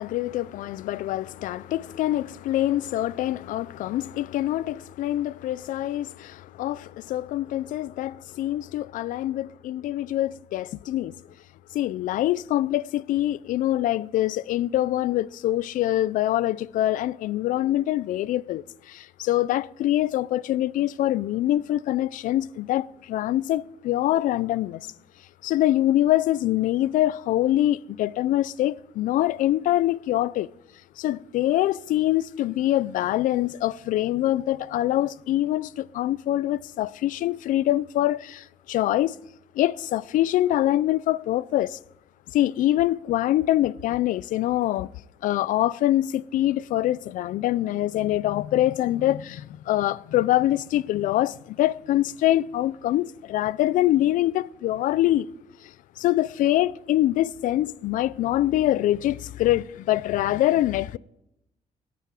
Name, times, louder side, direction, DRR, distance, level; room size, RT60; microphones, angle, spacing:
voice 1, 0.0-11.1 11.7-24.9 25.4-30.5 31.0-39.1 39.6-41.8 42.3-44.9 45.2-55.3 56.0-61.0, left 14 dB, 85° left, 0.4 m, -24 dB
18.5 x 9.3 x 4.8 m
cardioid pair, 155°, 13 cm